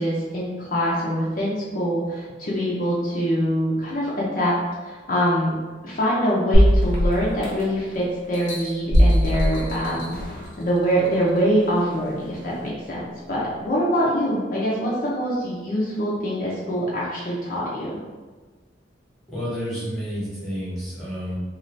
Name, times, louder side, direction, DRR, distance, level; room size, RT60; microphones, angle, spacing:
voice 1, 0.0-4.5 4.8-5.5 5.8-17.9, equal, 50° left, -6 dB, 0.5 m, -24 dB
sound 1, 6.5-7.8 8.3-10.5 11.0-11.1, equal, 90° left, 0.9 m, -19 dB
voice 2, 19.3-21.4, equal, ahead, -10 dB, 1.0 m, -30 dB
2.5 x 2.4 x 3.1 m, 1.4 s
head